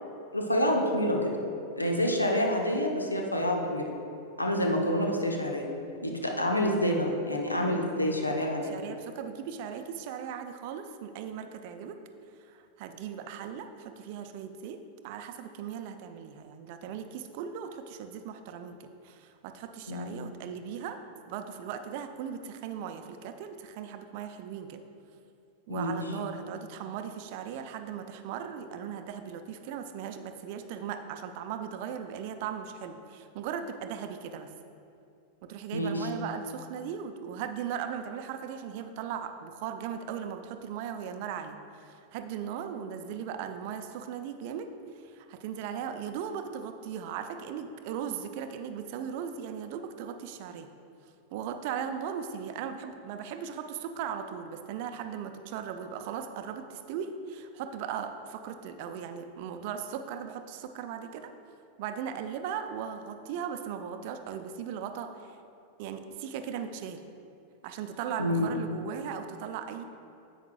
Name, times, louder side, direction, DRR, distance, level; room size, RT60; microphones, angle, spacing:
voice 1, 0.3-1.3 1.8-3.9 4.4-5.7 6.0-8.8 19.9-20.1 25.7-26.0 35.7-36.1 68.2-68.5, equal, 85° left, 1 dB, 0.9 m, -28 dB
voice 2, 8.7-12.0 12.5-21.0 21.3-24.8 25.7-34.5 35.4-44.7 45.1-50.7 51.3-61.3 61.8-65.4 65.8-67.0 67.6-69.8, right 8 dB, 50° right, 8 dB, 0.5 m, -38 dB
10.5 x 8.0 x 2.4 m, 2.7 s
figure-of-eight pair, 90°, 0 cm